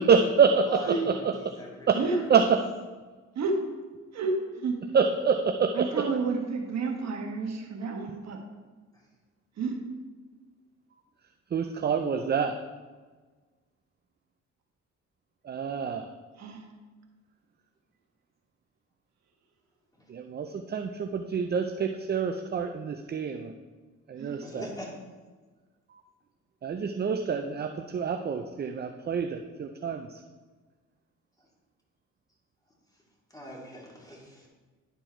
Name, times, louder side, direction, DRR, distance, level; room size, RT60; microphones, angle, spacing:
voice 1, 0.1-1.5 1.9-2.0 2.3-2.6 4.9-6.1 11.5-12.6 15.5-16.1 20.1-23.5 24.1-24.6 26.6-30.1, right 6 dB, 35° right, 5 dB, 0.5 m, -26 dB
voice 2, 0.7-2.3 20.0-20.1 24.4-24.9 33.3-34.5, equal, 10° left, -4 dB, 2.6 m, -42 dB
voice 3, 4.1-4.7 5.7-8.4 9.6-9.8 16.4-16.6 24.2-24.4, right 4 dB, 60° right, 2 dB, 1.3 m, -30 dB
10.5 x 4.5 x 4.4 m, 1.3 s
cardioid pair, 90°, 30 cm